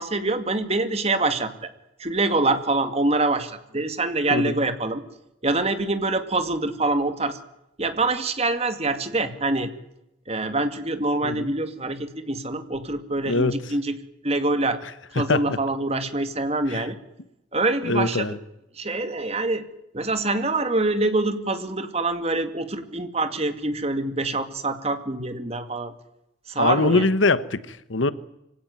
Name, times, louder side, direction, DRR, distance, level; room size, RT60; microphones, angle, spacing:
voice 1, 0.0-1.5 2.0-5.0 5.4-7.4 7.8-9.7 10.3-14.0 14.2-14.8 15.1-17.0 17.5-18.3 18.7-19.6 19.9-25.9 26.5-27.1, right 2 dB, 35° right, 2.2 m, -25 dB
voice 2, 13.2-13.6 15.2-15.6 16.7-16.8 17.8-18.4 26.6-28.1, left 3 dB, 90° left, 1.3 m, -23 dB
25.0 x 17.0 x 9.6 m
head